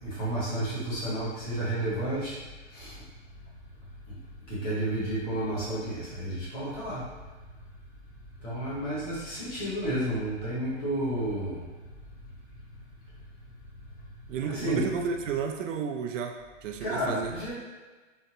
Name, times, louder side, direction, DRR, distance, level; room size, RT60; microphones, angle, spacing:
voice 1, 0.0-2.3 2.7-2.9 4.1-4.2 4.5-7.0 8.4-11.6 14.4-14.8 16.8-17.5, right 1 dB, 30° left, -9 dB, 1.2 m, -31 dB
voice 2, 14.3-17.3, right 6 dB, 75° right, 3 dB, 0.5 m, -32 dB
3.8 x 2.1 x 2.9 m, 1.3 s
hypercardioid pair, 175°, 38 cm